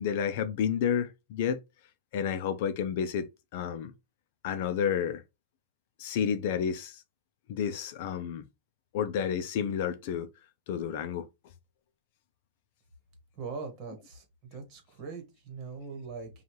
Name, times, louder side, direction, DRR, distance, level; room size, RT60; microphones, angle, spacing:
voice 1, 0.0-1.6 2.1-3.9 4.4-5.2 6.0-7.0 7.5-8.4 8.9-10.3 10.7-11.3, left 8 dB, 50° left, 0.5 m, -30 dB
voice 2, 13.4-14.2 14.5-16.3, right 4 dB, 30° right, 1.5 m, -41 dB
5.4 x 2.4 x 3.1 m
supercardioid pair, 160°, 0 cm